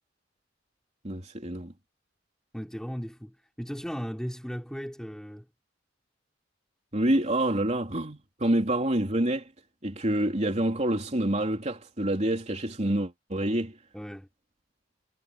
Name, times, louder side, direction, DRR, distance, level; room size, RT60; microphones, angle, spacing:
voice 1, 1.0-1.7 6.9-9.5 9.8-13.8, right 1 dB, 35° right, 3.4 m, -27 dB
voice 2, 2.5-5.4 13.9-14.3, equal, 5° left, 3.6 m, -36 dB
head